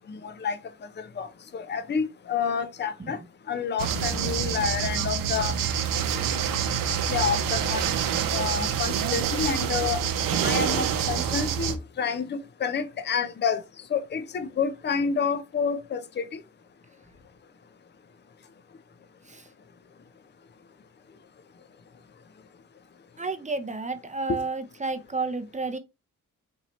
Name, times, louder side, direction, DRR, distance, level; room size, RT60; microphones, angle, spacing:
voice 1, 0.1-0.6 1.0-3.2 3.5-5.5 7.1-7.9 8.3-10.0 10.4-13.6 13.9-16.4 24.3-24.4, left 6 dB, 30° left, 0.6 m, -29 dB
sound 1, 3.8-11.7, right 8 dB, 80° right, 0.7 m, -26 dB
voice 2, 23.2-25.8, right 3 dB, 20° right, 0.7 m, -31 dB
4.4 x 2.7 x 3.0 m
supercardioid pair, 65°, 34 cm